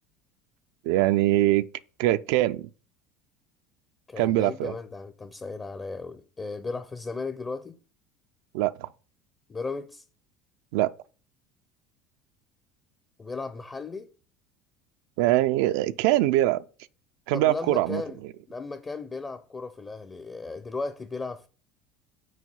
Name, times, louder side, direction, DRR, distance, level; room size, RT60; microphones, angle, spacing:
voice 1, 0.9-1.7 2.0-2.7 4.2-4.7 8.5-8.9 10.7-10.9 15.2-16.6 17.3-18.0, right 15 dB, 75° right, 0.3 m, -23 dB
voice 2, 4.1-7.8 9.5-10.0 13.2-14.1 17.3-18.2 18.5-21.5, left 3 dB, 25° left, 0.6 m, -35 dB
6.4 x 4.3 x 5.4 m
supercardioid pair, 85°, 0 cm